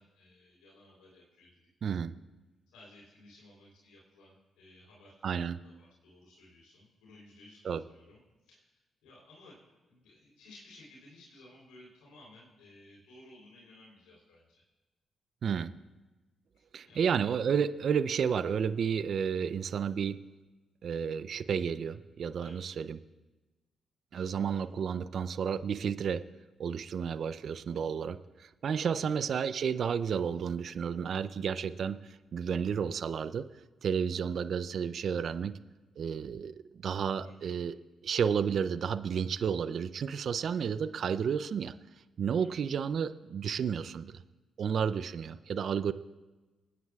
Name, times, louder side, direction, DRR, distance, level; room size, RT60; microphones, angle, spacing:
voice 1, 0.0-1.6 2.7-5.2 5.6-8.7 9.0-9.6 9.9-14.6 16.5-17.1 22.4-22.6 24.1-24.6 28.7-29.3 37.2-37.5 42.4-42.5, left 2 dB, 80° left, -4 dB, 3.5 m, -57 dB
voice 2, 1.8-2.1 5.2-5.6 7.6-7.8 15.4-15.7 16.7-20.2 20.8-23.0 24.1-26.2 26.6-33.5 33.8-35.6 36.0-37.7 38.0-41.7 42.2-44.2 44.6-45.9, right 7 dB, 65° right, 13 dB, 0.4 m, -31 dB
27.0 x 9.4 x 2.4 m, 1.1 s
hypercardioid pair, 40°, 0 cm